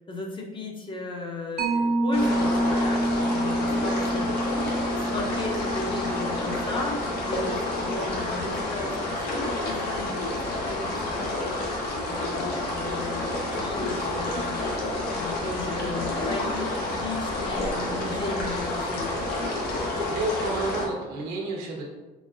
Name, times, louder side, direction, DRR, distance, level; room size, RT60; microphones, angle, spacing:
voice 1, 0.1-11.3 12.0-13.2 13.6-14.7 15.1-19.2, left 2 dB, 30° left, 1 dB, 0.7 m, -35 dB
Mallet percussion, 1.6-8.6, right 1 dB, 65° right, 0.9 m, -28 dB
sound 1, 2.1-20.8, left 2 dB, 70° left, 1.0 m, -29 dB
voice 2, 20.1-21.8, right 2 dB, 90° right, -2 dB, 1.1 m, -30 dB
4.1 x 3.4 x 2.4 m, 1.2 s
cardioid pair, 110°, 17 cm